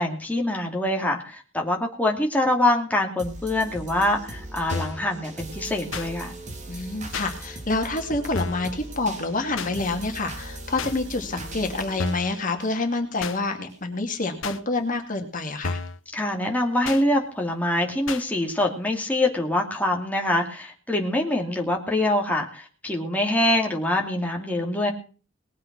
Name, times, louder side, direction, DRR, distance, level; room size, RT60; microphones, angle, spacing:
voice 1, 0.0-6.4 16.1-24.9, left 1 dB, 10° left, 0 dB, 2.7 m, -24 dB
sound 1, 3.2-13.2 13.7-13.8, right 1 dB, 40° right, 3.6 m, -39 dB
sound 2, 4.7-5.0 5.9-6.1 7.1-7.3 8.3-8.7 9.6-9.7 10.8-10.9 12.0-12.3 13.2-13.4 14.4-14.6 15.6-16.0 16.8-17.0 18.1-18.2, left 4 dB, 80° left, 1.1 m, -31 dB
voice 2, 6.7-15.8, left 2 dB, 45° left, 4 dB, 2.4 m, -27 dB
20.0 x 7.6 x 6.0 m, 0.37 s
head